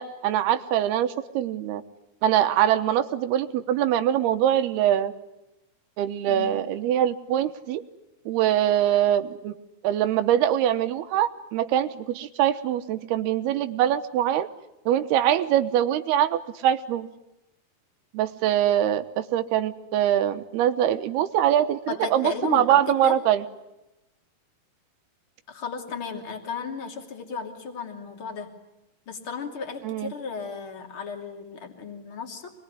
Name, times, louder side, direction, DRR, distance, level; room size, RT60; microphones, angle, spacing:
voice 1, 0.0-1.8 2.2-5.1 6.0-7.8 8.3-9.5 9.8-14.5 14.9-17.1 18.1-23.4 29.8-30.1, right 11 dB, 85° right, 10 dB, 3.1 m, -23 dB
voice 2, 21.9-23.2 25.5-28.5 29.1-32.5, left 5 dB, 35° left, 4 dB, 3.4 m, -34 dB
25.5 x 22.0 x 9.9 m, 0.93 s
omnidirectional pair, 4.5 m